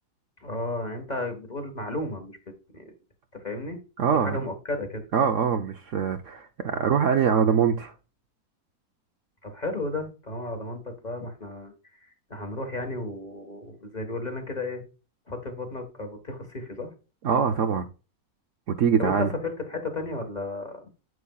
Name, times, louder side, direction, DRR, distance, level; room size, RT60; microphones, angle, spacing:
voice 1, 0.4-2.4 2.7-2.9 3.3-3.8 4.1-5.0 9.4-14.8 15.3-16.9 19.0-20.9, left 2 dB, 30° left, 1.5 m, -33 dB
voice 2, 4.0-4.4 5.1-7.9 17.2-17.8 18.7-19.3, right 7 dB, 65° right, 0.9 m, -23 dB
9.4 x 6.9 x 2.3 m
omnidirectional pair, 1.7 m